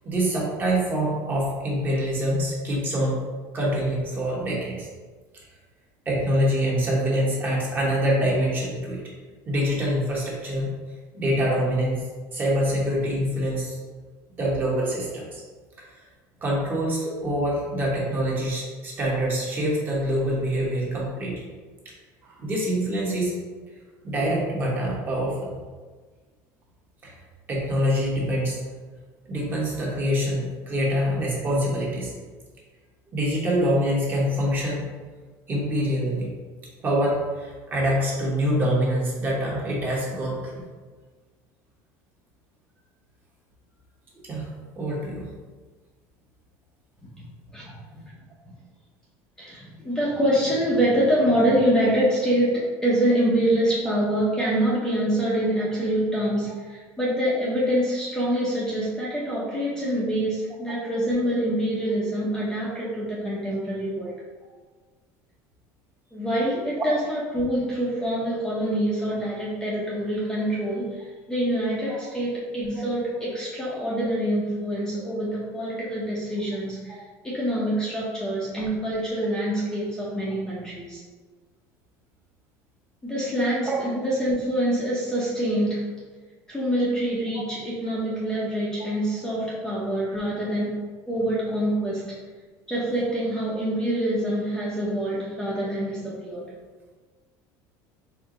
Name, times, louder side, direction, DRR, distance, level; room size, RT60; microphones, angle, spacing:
voice 1, 0.0-3.2 3.5-4.9 5.3-5.4 6.0-9.0 9.5-10.7 11.1-13.8 14.4-15.4 16.4-21.3 22.3-23.3 24.0-25.5 27.0-27.2 27.5-28.6 29.2-32.1 33.1-34.8 35.5-36.3 36.8-40.6 44.1-44.5 44.8-45.3 66.8-66.9 83.7-83.8, equal, 25° right, -4 dB, 1.0 m, -25 dB
voice 2, 47.5-48.0 49.4-64.2 66.1-81.0 83.0-85.8 86.5-90.7 91.1-92.2 92.7-96.5, right 1 dB, 5° left, -7 dB, 0.7 m, -25 dB
4.4 x 2.0 x 3.7 m, 1.4 s
cardioid pair, 145°, 8 cm